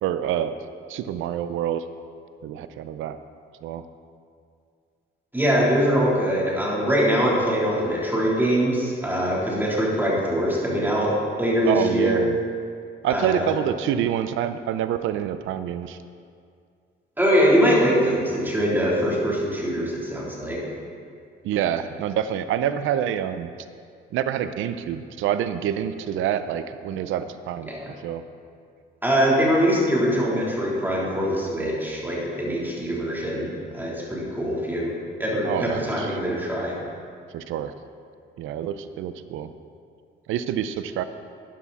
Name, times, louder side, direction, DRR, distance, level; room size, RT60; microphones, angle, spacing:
voice 1, 0.0-0.6 0.9-1.8 2.4-3.2 3.6-3.8 11.7-12.4 13.0-16.0 21.4-23.5 24.1-27.7 28.0-28.2 35.4-36.2 37.3-37.7 38.4-39.5 40.3-41.0, right 10 dB, 90° right, 11 dB, 0.6 m, -27 dB
voice 2, 5.3-11.1 11.4-12.2 13.1-13.5 17.2-20.6 27.6-27.9 29.0-34.9 35.2-36.7, equal, 10° right, -5 dB, 3.4 m, -23 dB
13.0 x 9.7 x 4.2 m, 2.2 s
cardioid pair, 90°, 20 cm